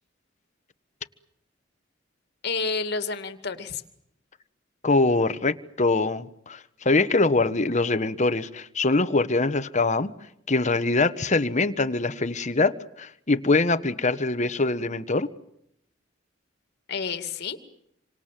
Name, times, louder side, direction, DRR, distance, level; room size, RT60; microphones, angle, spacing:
voice 1, 2.4-3.8 16.9-17.6, left 4 dB, 60° left, 2.4 m, -29 dB
voice 2, 4.8-6.6 6.8-10.1 10.5-15.3, left 3 dB, 40° left, 1.3 m, -23 dB
28.0 x 25.5 x 7.6 m
head